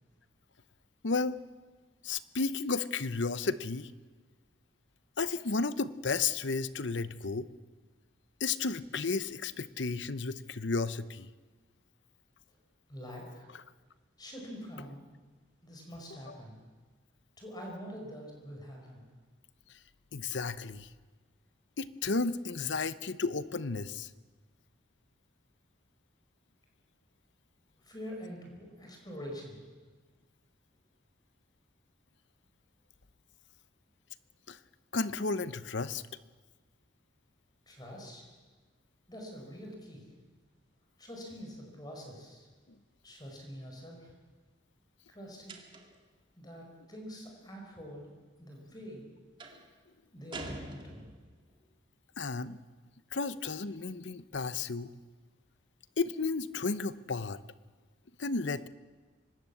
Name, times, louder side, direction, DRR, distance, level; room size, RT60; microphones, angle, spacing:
voice 1, 1.0-1.4 2.0-3.9 5.2-7.5 8.4-11.3 20.1-20.9 21.8-24.1 34.5-34.6 34.9-36.0 52.2-52.6 53.1-54.9 56.0-57.4 58.2-58.7, left 4 dB, 70° left, 15 dB, 0.8 m, -33 dB
voice 2, 12.9-13.5 14.2-15.1 15.6-16.5 17.4-19.0 27.8-29.6 37.7-38.3 39.1-40.1 41.0-42.5 43.0-44.1 45.1-45.6 46.4-49.1 50.1-51.0 51.5-51.6, equal, 20° left, 1 dB, 5.3 m, -45 dB
sound 1, 45.5-46.1 49.4-49.7 50.3-51.4, right 2 dB, 25° right, 2.4 m, -45 dB
24.5 x 20.0 x 8.5 m, 1.4 s
head